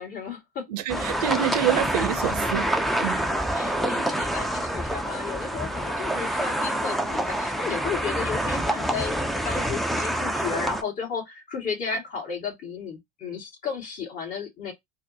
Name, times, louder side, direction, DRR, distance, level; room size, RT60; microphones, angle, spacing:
voice 1, 0.0-0.7 3.5-14.7, left 6 dB, 45° left, 2.0 m, -33 dB
voice 2, 0.7-2.7 3.0-3.2, right 10 dB, 70° right, 0.7 m, -26 dB
sound 1, 0.9-10.8, right 1 dB, ahead, 0.5 m, -27 dB
4.1 x 2.1 x 2.7 m
hypercardioid pair, 85°, 21 cm